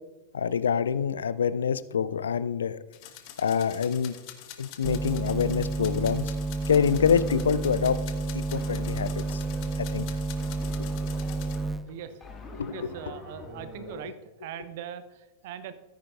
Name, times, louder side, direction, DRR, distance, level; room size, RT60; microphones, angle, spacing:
voice 1, 0.3-2.8 3.4-4.2 4.6-6.4 6.7-8.0 8.3-9.4 9.8-10.1 10.8-10.9 12.5-12.9 14.0-14.1, left 7 dB, 70° left, 0.4 m, -26 dB
sound 1, 2.9-11.6, left 11 dB, 45° left, 1.0 m, -46 dB
sound 2, 4.8-11.9, right 3 dB, 5° right, 0.4 m, -31 dB
sound 3, 6.7-14.0, left 2 dB, 20° left, 1.7 m, -46 dB
voice 2, 11.8-12.2 12.7-14.1 14.4-15.7, right 9 dB, 50° right, 0.7 m, -40 dB
13.5 x 9.5 x 2.5 m
figure-of-eight pair, 90°, 0 cm